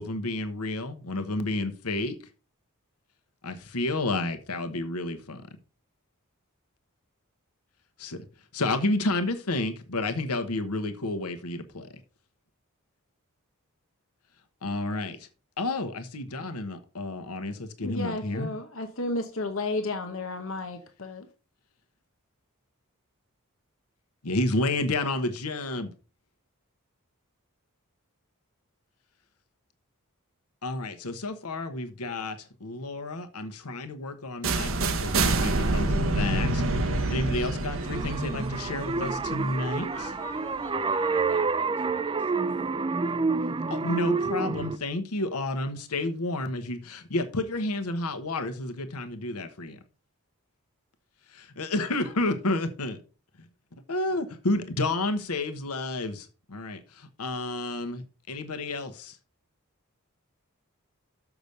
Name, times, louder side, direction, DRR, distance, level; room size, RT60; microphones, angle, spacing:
voice 1, 0.0-2.2 3.4-5.4 8.0-8.2 8.5-11.9 14.6-15.2 15.6-18.5 24.2-25.9 30.6-39.9 43.7-49.8 51.3-53.0 53.9-59.2, left 2 dB, 90° left, 1.1 m, -30 dB
voice 2, 17.8-21.3, left 2 dB, 60° left, 1.0 m, -32 dB
sound 1, 34.4-40.3, right 2 dB, 60° right, 1.2 m, -27 dB
sound 2, 37.6-44.8, right 4 dB, 20° right, 0.4 m, -28 dB
voice 3, 39.6-42.5, equal, 5° left, 3.2 m, -44 dB
6.8 x 6.0 x 6.7 m
head